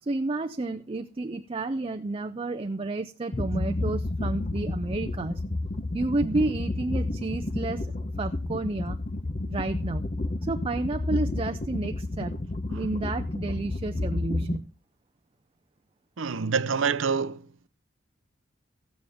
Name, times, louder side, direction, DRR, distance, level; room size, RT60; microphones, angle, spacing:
voice 1, 0.0-5.5 5.9-9.0 9.4-10.0 10.4-12.4 12.7-14.7, right 2 dB, 30° right, 0.5 m, -31 dB
sound 1, 3.3-14.6, left 2 dB, 35° left, 0.9 m, -31 dB
voice 2, 16.2-17.5, right 5 dB, 70° right, 0.7 m, -26 dB
14.5 x 9.1 x 3.5 m
head